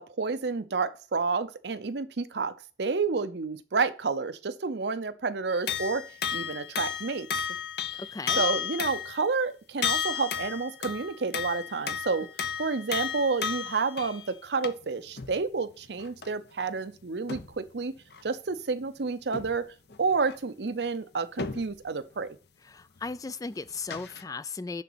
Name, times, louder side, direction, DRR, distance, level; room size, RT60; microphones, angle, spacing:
voice 1, 0.0-6.0 6.3-7.3 8.4-12.3 12.6-17.9 18.2-19.7 20.0-22.4, right 4 dB, 75° right, 0.7 m, -30 dB
sound 1, 5.5-9.2 9.8-14.3 14.6-14.8 15.2-15.4 15.9-16.3 17.3-17.6 18.1-18.2 19.3-19.6 19.9-20.4 21.4-21.8 23.0-23.1 23.6-24.2, left 7 dB, 70° left, 0.8 m, -33 dB
voice 2, 8.0-8.4 22.7-24.8, left 4 dB, 20° left, 0.3 m, -36 dB
11.0 x 4.0 x 5.7 m
head